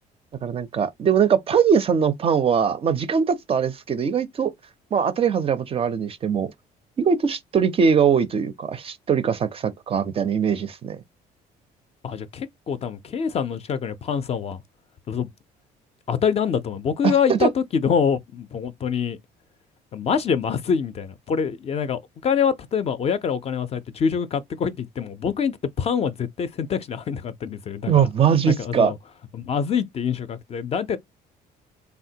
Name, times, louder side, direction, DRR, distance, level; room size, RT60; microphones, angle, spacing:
voice 1, 0.4-4.5 4.9-6.5 7.0-11.0 17.0-17.5 27.9-28.9, right 7 dB, 35° right, 0.4 m, -21 dB
voice 2, 12.0-14.6 15.1-15.3 16.1-19.2 19.9-28.1 28.5-29.0 29.3-31.0, left 7 dB, 35° left, 0.4 m, -25 dB
3.4 x 2.1 x 2.7 m
cardioid pair, 110°, 17 cm